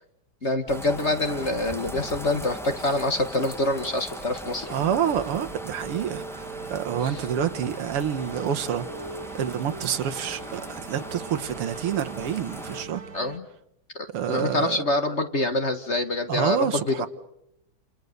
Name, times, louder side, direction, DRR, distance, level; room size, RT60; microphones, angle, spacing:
voice 1, 0.4-4.7 7.0-7.2 13.1-13.4 14.3-16.9, left 2 dB, 35° left, 7 dB, 1.5 m, -26 dB
sound 1, 0.6-13.4, right 4 dB, 70° right, 2.5 m, -42 dB
sound 2, 0.7-12.8, equal, 5° left, 0.4 m, -39 dB
voice 2, 4.7-9.1 9.3-13.0 14.1-14.8 16.3-17.1, right 9 dB, 90° right, 8 dB, 2.2 m, -28 dB
30.0 x 28.5 x 6.7 m, 0.81 s
omnidirectional pair, 2.4 m